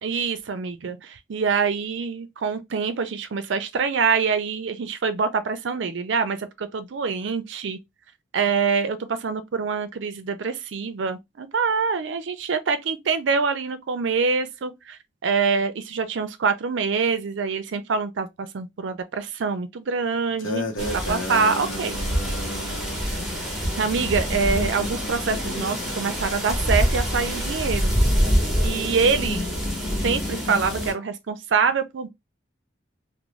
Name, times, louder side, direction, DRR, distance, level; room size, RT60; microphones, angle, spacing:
voice 1, 0.0-7.8 8.3-22.0 23.8-28.0 28.6-29.5 30.0-32.1, right 5 dB, 70° right, 0.4 m, -25 dB
sound 1, 20.4-23.0, left 1 dB, 85° left, 0.7 m, -32 dB
sound 2, 20.8-30.9, equal, ahead, 0.8 m, -26 dB
2.5 x 2.0 x 3.0 m
head